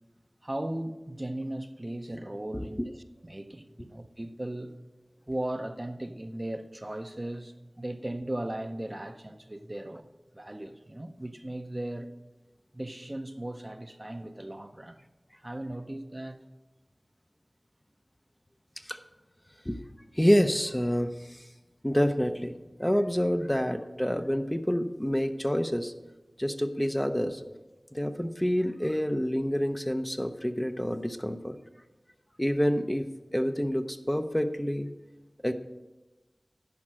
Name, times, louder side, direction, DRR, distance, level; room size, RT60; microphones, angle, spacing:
voice 1, 0.4-4.8 5.3-10.1 10.3-12.1 12.7-15.0 15.4-16.4, right 1 dB, 30° right, 0.6 m, -37 dB
voice 2, 20.2-21.5 21.8-25.9 26.4-27.4 27.9-31.6 32.4-33.1 33.3-34.9 35.4-35.5, equal, 15° left, 0.6 m, -27 dB
10.5 x 5.1 x 7.4 m
wide cardioid pair, 45°, 0 cm